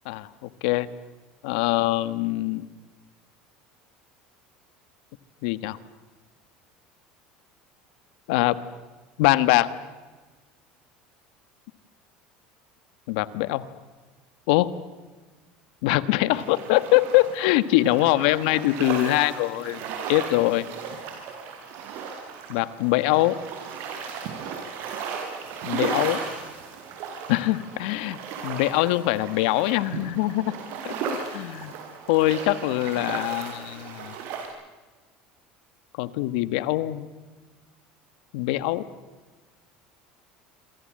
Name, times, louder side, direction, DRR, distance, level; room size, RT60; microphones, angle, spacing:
voice 1, 0.1-0.9 1.4-2.6 5.4-5.8 8.3-8.6 9.2-9.7 13.1-13.6 14.5-14.7 15.8-20.6 22.5-23.3 25.6-26.2 27.3-28.2 28.4-30.4 30.8-31.7 32.1-34.1 36.0-37.1 38.3-38.8, left 17 dB, 80° left, 14 dB, 1.3 m, -23 dB
sound 1, 16.3-34.5, right 6 dB, 65° right, 7.0 m, -35 dB
27.5 x 25.0 x 7.6 m, 1.3 s
supercardioid pair, 110°, 4 cm